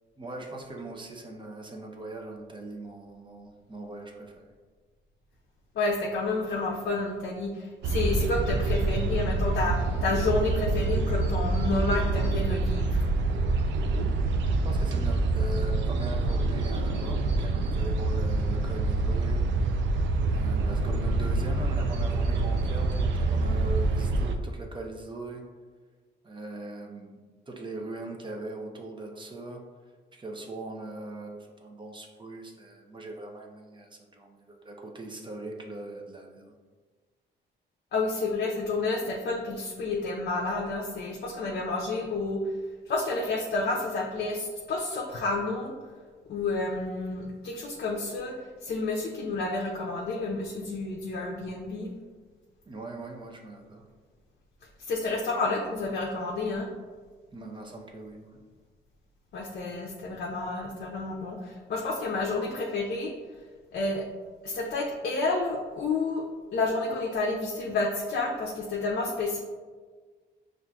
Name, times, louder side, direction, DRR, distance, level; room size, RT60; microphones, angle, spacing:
voice 1, 0.2-4.5 14.6-19.4 20.3-25.4 26.2-27.2 27.5-29.6 30.1-36.5 52.7-53.8 57.3-58.4, right 2 dB, 25° right, 1 dB, 0.6 m, -40 dB
voice 2, 5.8-13.0 37.9-42.4 42.9-45.7 46.3-48.3 48.6-51.9 54.9-56.7 59.3-63.1 63.7-64.0 64.4-66.2 66.5-69.4, left 3 dB, 55° left, -1 dB, 0.5 m, -30 dB
sound 1, 7.8-24.4, right 2 dB, 70° right, 0.4 m, -26 dB
5.6 x 2.5 x 2.2 m, 1.5 s
cardioid pair, 90°, 20 cm